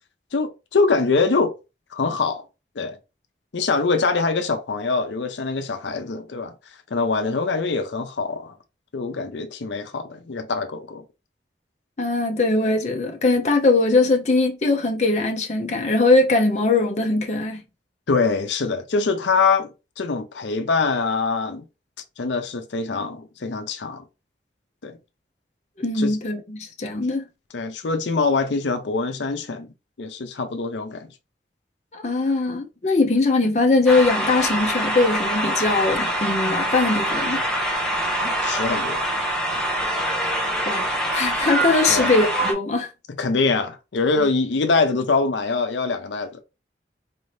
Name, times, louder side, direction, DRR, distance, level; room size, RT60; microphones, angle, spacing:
voice 1, 0.3-1.6 1.9-2.4 2.8-3.0 3.5-6.5 6.9-8.6 8.9-11.0 18.1-21.6 22.2-24.0 24.8-25.0 25.9-26.2 27.5-29.7 30.0-31.1 38.2-39.1 41.9-42.1 43.2-46.4, left 4 dB, 85° left, 0.6 m, -24 dB
voice 2, 12.0-17.6 25.8-27.2 31.9-37.4 40.7-42.9 44.2-44.3, left 3 dB, 40° left, 0.7 m, -21 dB
sound 1, 33.9-42.5, right 1 dB, 5° left, 0.7 m, -24 dB
4.1 x 2.7 x 3.2 m
head